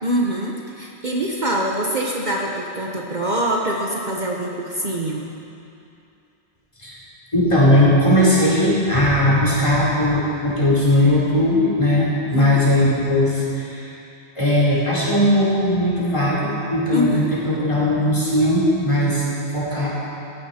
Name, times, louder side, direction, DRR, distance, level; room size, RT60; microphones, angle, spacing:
voice 1, 0.0-5.3 12.3-12.7 16.9-17.3, right 1 dB, 45° right, -1 dB, 1.2 m, -24 dB
voice 2, 7.3-13.9 14.4-19.2 19.5-19.9, left 1 dB, 30° left, -7 dB, 4.1 m, -18 dB
16.5 x 14.5 x 4.3 m, 2.7 s
omnidirectional pair, 1.1 m